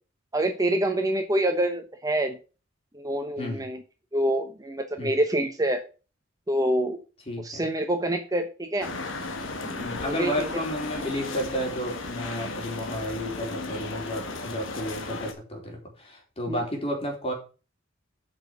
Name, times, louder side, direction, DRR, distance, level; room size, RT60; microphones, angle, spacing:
voice 1, 0.3-2.4 2.9-3.8 4.1-5.8 6.5-7.0 7.4-8.9 9.6-10.3 16.5-16.6, right 1 dB, 20° right, 6 dB, 0.9 m, -26 dB
voice 2, 7.3-7.6 9.8-17.3, equal, 30° left, 1 dB, 3.9 m, -32 dB
sound 1, 8.8-15.3, left 3 dB, 75° left, 1.6 m, -35 dB
8.9 x 6.1 x 6.0 m, 0.34 s
head